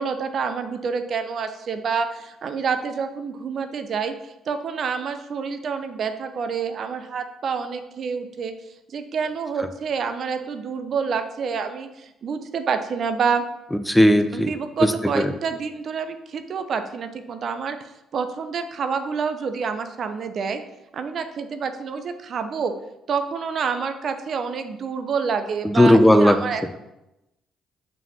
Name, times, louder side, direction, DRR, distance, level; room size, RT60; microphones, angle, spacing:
voice 1, 0.0-8.5 8.9-13.4 14.3-17.8 18.1-20.6 20.9-22.7 23.1-26.8, right 5 dB, 50° right, 8 dB, 0.8 m, -28 dB
voice 2, 13.7-14.5 14.8-15.3 25.6-26.4, left 1 dB, 5° left, 9 dB, 0.9 m, -16 dB
7.3 x 5.6 x 5.8 m, 0.92 s
figure-of-eight pair, 45°, 0 cm